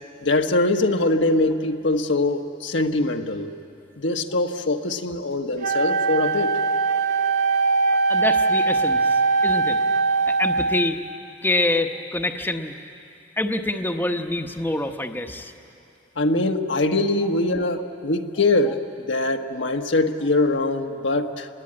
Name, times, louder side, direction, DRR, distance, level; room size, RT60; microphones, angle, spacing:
voice 1, 0.2-3.5 4.0-6.6 16.2-21.5, left 2 dB, 75° left, 5 dB, 1.3 m, -23 dB
Wind instrument woodwind instrument, 5.6-11.1, right 4 dB, 45° right, 1.3 m, -21 dB
voice 2, 7.9-9.8 10.3-11.0 11.4-12.7 13.4-15.5, left 1 dB, 10° left, 5 dB, 1.0 m, -26 dB
28.5 x 21.0 x 8.7 m, 2.7 s
head